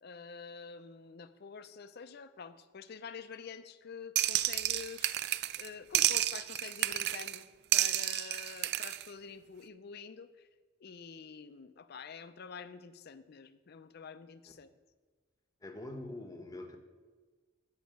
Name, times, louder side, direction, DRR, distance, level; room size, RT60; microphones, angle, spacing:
voice 1, 0.0-7.5 7.7-10.5 10.8-14.7, left 6 dB, 55° left, 12 dB, 0.5 m, -47 dB
sound 1, 4.2-5.7 5.9-7.4 7.7-9.0, right 14 dB, 55° right, 0.3 m, -31 dB
voice 2, 15.6-16.8, left 1 dB, 20° left, 5 dB, 0.8 m, -44 dB
7.2 x 5.6 x 7.5 m, 1.4 s
head